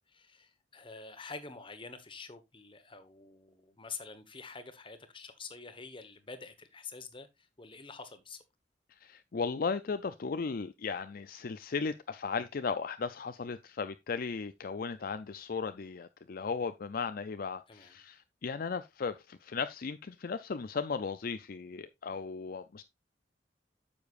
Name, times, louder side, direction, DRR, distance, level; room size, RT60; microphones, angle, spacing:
voice 1, 0.1-8.4 17.7-17.9, left 4 dB, 30° left, 1.2 m, -47 dB
voice 2, 8.9-22.8, left 5 dB, 55° left, 0.5 m, -36 dB
9.6 x 7.0 x 2.5 m
head